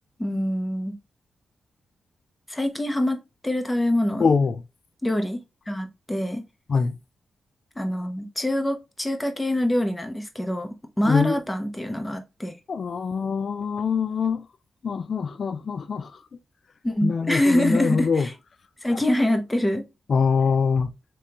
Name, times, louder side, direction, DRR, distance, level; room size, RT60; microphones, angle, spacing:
voice 1, 0.2-1.0 2.5-4.3 5.0-6.4 7.8-12.5 16.8-18.3 18.8-19.8, left 1 dB, 15° left, 0.9 m, -25 dB
voice 2, 4.2-4.6 6.7-7.0 11.1-11.4 12.7-14.5 14.8-16.1 17.0-18.3 20.1-20.9, left 5 dB, 60° left, 0.4 m, -23 dB
3.3 x 3.0 x 2.9 m
supercardioid pair, 50°, 0 cm